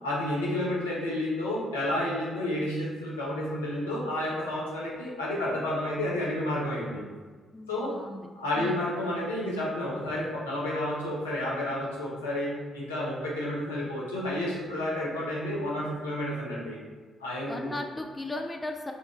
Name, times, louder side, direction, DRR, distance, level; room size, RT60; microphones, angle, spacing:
voice 1, 0.0-7.0 7.7-7.9 8.4-16.8 17.2-17.7, left 1 dB, 85° left, -6 dB, 0.7 m, -31 dB
voice 2, 7.5-8.3 8.5-8.8 10.1-10.2 17.5-18.9, left 2 dB, 25° left, 4 dB, 0.4 m, -36 dB
4.2 x 2.4 x 3.0 m, 1.4 s
figure-of-eight pair, 40°, 0 cm